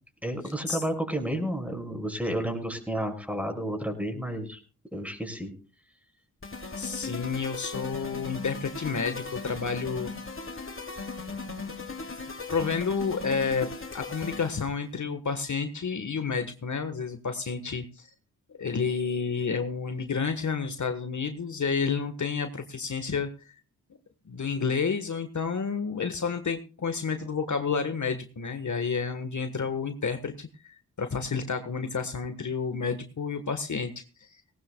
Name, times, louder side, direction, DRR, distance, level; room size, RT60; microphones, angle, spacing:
voice 1, 0.2-4.6 4.9-5.5, right 1 dB, 5° right, 5 dB, 5.8 m, -31 dB
sound 1, 6.4-14.8, left 4 dB, 35° left, 2.7 m, -38 dB
voice 2, 6.8-10.1 12.5-18.1 18.6-23.5 24.3-34.4, left 5 dB, 50° left, 8 dB, 1.5 m, -30 dB
18.5 x 18.5 x 2.3 m, 0.35 s
supercardioid pair, 45°, 38 cm